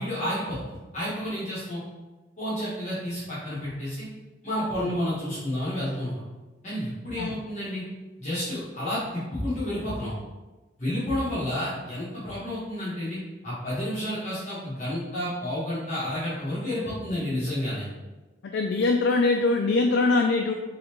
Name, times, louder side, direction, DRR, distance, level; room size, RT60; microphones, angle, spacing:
voice 1, 0.0-1.8 2.4-4.1 4.4-6.2 6.6-7.8 8.2-10.1 10.8-17.9, left 1 dB, 40° left, -10 dB, 1.3 m, -30 dB
voice 2, 18.4-20.5, left 3 dB, 75° left, 2 dB, 0.3 m, -23 dB
4.0 x 3.3 x 3.0 m, 1.2 s
head